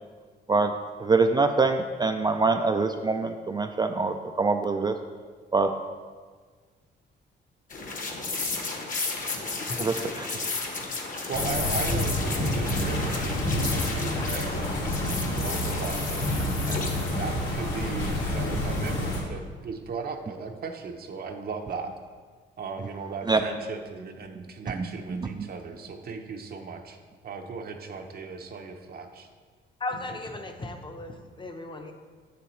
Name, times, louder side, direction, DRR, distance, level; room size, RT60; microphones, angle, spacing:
voice 1, 1.0-4.9 5.5-5.7 9.8-10.5 23.3-23.4 24.8-25.5, right 3 dB, 20° right, 5 dB, 0.3 m, -25 dB
sound 1, 7.7-17.3, left 3 dB, 45° left, 1.1 m, -33 dB
sound 2, 11.3-19.2, left 1 dB, 85° left, 1.9 m, -28 dB
voice 2, 11.3-21.9 22.6-27.0 27.2-29.3 29.9-30.2, right 5 dB, 50° right, 4 dB, 0.7 m, -37 dB
voice 3, 29.8-31.9, left 2 dB, 25° left, 5 dB, 0.8 m, -36 dB
7.4 x 6.9 x 3.1 m, 1.5 s
cardioid pair, 90°, 20 cm